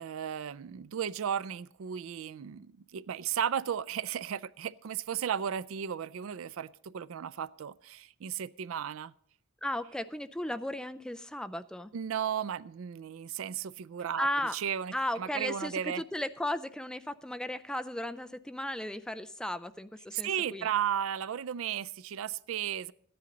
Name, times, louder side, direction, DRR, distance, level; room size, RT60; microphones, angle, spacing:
voice 1, 0.0-9.1 11.9-14.3 14.5-16.0 20.1-22.9, right 8 dB, 70° right, 0.4 m, -34 dB
voice 2, 9.6-11.9 14.2-14.6 14.9-20.7, left 1 dB, 5° left, 0.3 m, -35 dB
14.5 x 10.5 x 3.9 m
head